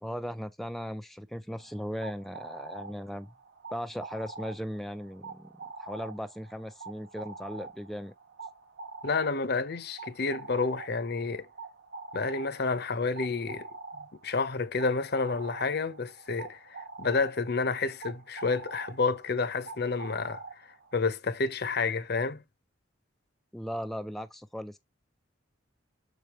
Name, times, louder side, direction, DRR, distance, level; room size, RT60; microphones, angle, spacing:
voice 1, 0.0-3.3 3.7-5.5 5.8-8.1 23.5-24.8, equal, ahead, 0.3 m, -37 dB
sound 1, 1.6-21.0, right 3 dB, 65° right, 1.0 m, -45 dB
voice 2, 9.0-11.5 12.1-13.7 13.9-20.4 20.9-22.4, left 4 dB, 55° left, 0.8 m, -30 dB
6.6 x 5.1 x 3.0 m
head